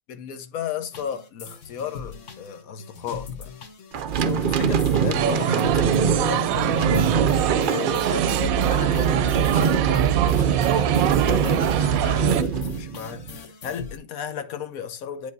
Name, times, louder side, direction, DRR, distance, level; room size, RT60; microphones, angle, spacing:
voice 1, 0.1-3.5 4.2-7.1 7.6-15.3, left 8 dB, 85° left, 1.3 m, -34 dB
sound 1, 0.9-14.0, left 6 dB, 65° left, 1.3 m, -40 dB
sound 2, 3.9-13.4, right 8 dB, 60° right, 0.5 m, -23 dB
sound 3, 5.1-12.4, right 9 dB, 90° right, 1.0 m, -26 dB
8.5 x 5.1 x 2.6 m
omnidirectional pair, 1.4 m